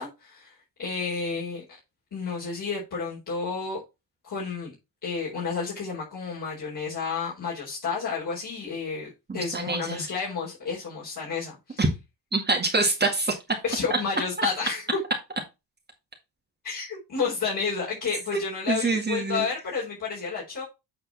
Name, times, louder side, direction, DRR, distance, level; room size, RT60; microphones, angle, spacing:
voice 1, 0.0-1.6 2.1-3.8 4.2-4.7 5.0-11.8 13.6-15.0 16.6-20.6, left 5 dB, 45° left, 4.3 m, -31 dB
voice 2, 9.3-10.0 11.8-11.9 12.3-13.3 14.4-14.5 18.7-19.5, right 3 dB, 20° right, 2.0 m, -25 dB
8.6 x 4.3 x 4.2 m
cardioid pair, 125°, 44 cm